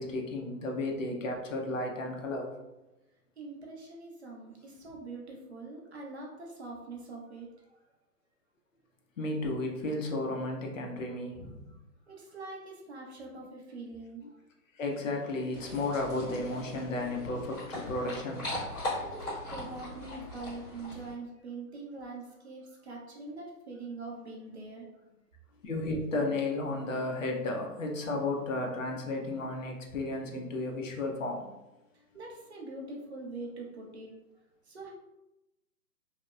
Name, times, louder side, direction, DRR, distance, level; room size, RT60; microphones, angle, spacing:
voice 1, 0.0-2.5 9.2-11.7 14.8-18.7 25.6-31.5, left 2 dB, 55° left, 1 dB, 0.6 m, -33 dB
voice 2, 3.4-7.8 11.7-11.8 12.1-14.2 19.0-25.2 31.9-34.1 34.6-34.9, right 3 dB, 45° right, -1 dB, 0.5 m, -44 dB
sound 1, 15.5-21.1, left 1 dB, 15° left, 1.2 m, -39 dB
2.8 x 2.0 x 2.3 m, 0.98 s
hypercardioid pair, 155°, 48 cm